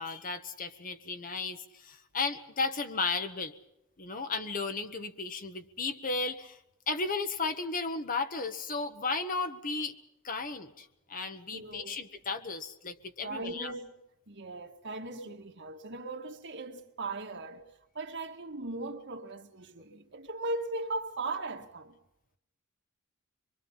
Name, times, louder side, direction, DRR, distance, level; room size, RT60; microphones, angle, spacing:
voice 1, 0.0-3.5 4.0-6.6 6.9-9.9 10.2-13.7, left 4 dB, 40° left, 1.4 m, -34 dB
voice 2, 11.5-12.0 13.2-14.0 14.3-17.7 18.0-22.0, right 2 dB, 55° right, 2.0 m, -38 dB
25.5 x 23.5 x 5.7 m
head